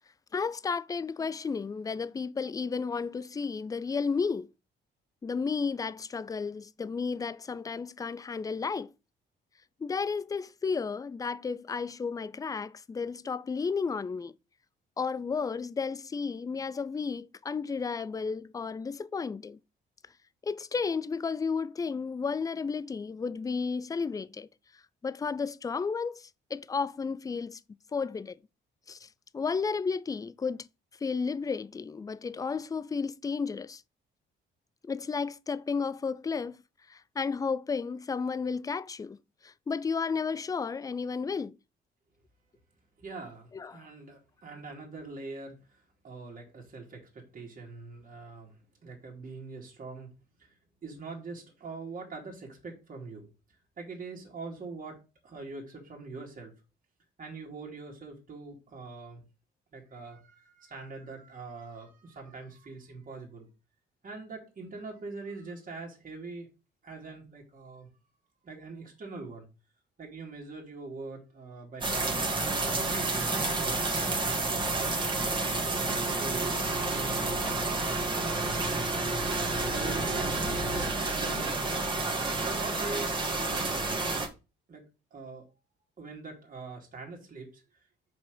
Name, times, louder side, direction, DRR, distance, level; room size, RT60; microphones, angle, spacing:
voice 1, 0.3-4.5 5.2-8.9 9.8-14.3 15.0-19.6 20.4-24.5 25.0-27.6 27.9-28.4 28.9-29.1 29.3-30.7 31.0-33.8 34.9-36.6 36.9-39.2 39.4-41.5 43.5-43.9, left 5 dB, 20° left, 0.3 m, -33 dB
voice 2, 43.0-48.6 48.8-50.1 50.4-50.5 50.8-53.3 53.8-56.5 57.2-59.2 59.7-63.5 64.0-66.5 66.8-67.9 68.4-69.5 70.0-72.2 72.5-74.4 75.8-77.6 78.2-79.0 79.7-81.9 82.4-83.8 84.7-84.8 85.1-85.5 86.0-87.6, right 3 dB, 45° right, 2.4 m, -43 dB
sound 1, 71.8-84.3, right 2 dB, 25° right, 1.7 m, -30 dB
5.4 x 4.3 x 5.0 m
cardioid pair, 90°, 20 cm